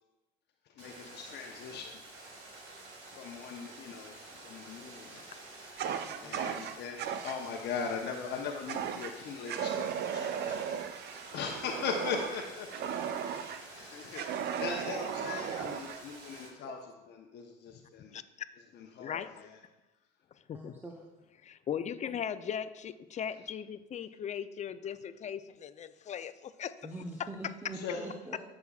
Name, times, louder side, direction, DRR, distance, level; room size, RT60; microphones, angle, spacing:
voice 1, 0.8-2.2 3.1-4.1 4.4-5.2 6.2-7.0 7.2-10.6 11.0-12.7 13.1-16.8 17.1-18.1 18.7-19.5 27.7-28.0, left 6 dB, 55° left, 2 dB, 0.9 m, -39 dB
sound 1, 0.8-16.5, right 2 dB, 70° right, 3.1 m, -50 dB
voice 2, 5.8-6.5 20.5-21.1 26.8-28.4, right 2 dB, 10° right, -1 dB, 1.0 m, -44 dB
Fire, 5.8-7.4 8.7-9.1 9.5-13.6 14.1-16.0, right 8 dB, 50° right, 0.7 m, -36 dB
voice 3, 19.0-19.3 20.5-20.7 21.4-26.7, left 8 dB, 35° left, 12 dB, 0.6 m, -38 dB
16.0 x 6.2 x 2.4 m, 1.0 s
hypercardioid pair, 80°, 21 cm